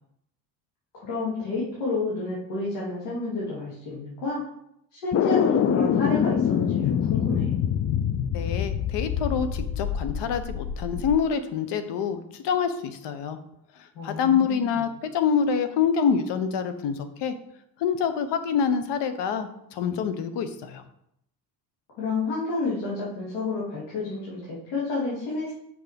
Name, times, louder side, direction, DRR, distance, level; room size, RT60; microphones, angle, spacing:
voice 1, 0.9-4.4 4.9-7.5 13.9-14.8 22.0-25.6, left 3 dB, 85° left, -7 dB, 2.8 m, -30 dB
sound 1, 5.1-11.2, left 8 dB, 35° left, 0.5 m, -25 dB
voice 2, 8.3-13.4 14.0-17.4 17.8-20.8, left 7 dB, 70° left, 10 dB, 1.0 m, -26 dB
6.0 x 5.4 x 5.2 m, 0.76 s
supercardioid pair, 90°, 43 cm